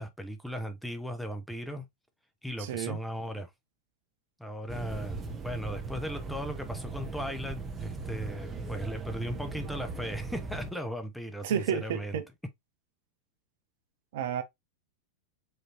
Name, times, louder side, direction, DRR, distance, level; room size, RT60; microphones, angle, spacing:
voice 1, 0.0-1.9 2.4-3.5 4.4-12.2, equal, ahead, 0.7 m, -37 dB
voice 2, 2.6-3.0 11.4-12.2 14.1-14.4, right 8 dB, 55° right, 0.7 m, -31 dB
sound 1, 4.7-10.7, right 3 dB, 15° right, 1.1 m, -38 dB
4.9 x 3.1 x 2.8 m
figure-of-eight pair, 90°, 0 cm